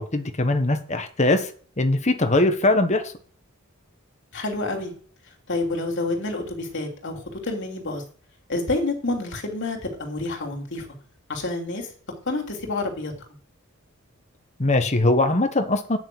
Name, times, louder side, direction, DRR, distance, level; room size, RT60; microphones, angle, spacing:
voice 1, 0.0-1.5 1.8-3.1 14.6-16.0, left 2 dB, 30° left, 7 dB, 1.3 m, -21 dB
voice 2, 4.3-4.9 5.5-8.0 8.5-10.9 11.3-11.9 12.2-13.1, left 2 dB, 55° left, 2 dB, 3.1 m, -28 dB
9.1 x 6.7 x 7.8 m, 0.43 s
head